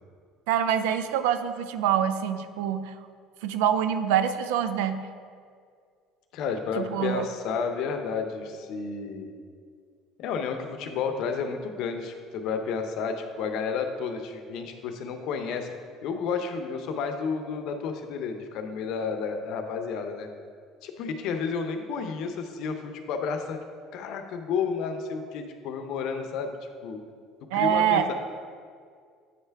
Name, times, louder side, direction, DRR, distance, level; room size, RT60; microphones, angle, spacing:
voice 1, 0.5-2.9 3.4-5.0 6.8-7.3 27.5-28.1, right 9 dB, 85° right, 10 dB, 0.4 m, -25 dB
voice 2, 6.3-9.4 10.2-15.7 16.0-20.3 20.8-23.6 23.9-26.6 26.8-27.0 27.5-28.1, left 5 dB, 70° left, 6 dB, 0.6 m, -31 dB
8.0 x 3.3 x 4.5 m, 2.1 s
supercardioid pair, 90°, 0 cm